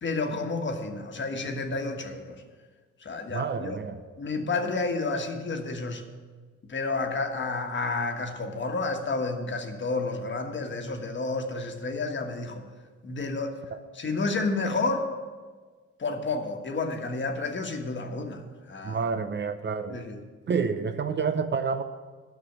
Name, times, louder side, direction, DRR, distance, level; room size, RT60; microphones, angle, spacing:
voice 1, 0.0-2.4 3.0-3.8 4.2-6.0 6.7-12.6 13.0-13.5 13.9-15.1 16.0-18.4 18.7-19.0 19.9-20.2, left 3 dB, 40° left, 4 dB, 1.4 m, -30 dB
voice 2, 3.3-4.0 13.7-13.8 18.8-20.0 20.5-21.8, right 5 dB, 35° right, 9 dB, 0.6 m, -29 dB
9.5 x 6.0 x 8.6 m, 1.4 s
cardioid pair, 90°, 30 cm